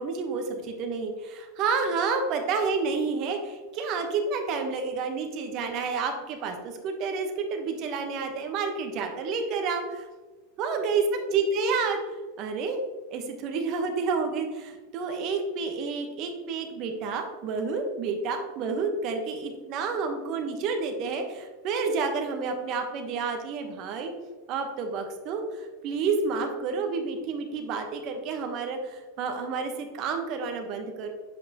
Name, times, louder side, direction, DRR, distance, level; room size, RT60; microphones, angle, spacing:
voice 1, 0.0-10.1 10.6-12.0 12.4-12.8 13.1-21.2 21.6-24.1 24.5-31.1, right 4 dB, 50° right, 5 dB, 1.1 m, -29 dB
7.4 x 5.3 x 2.9 m, 1.3 s
hypercardioid pair, 95°, 0 cm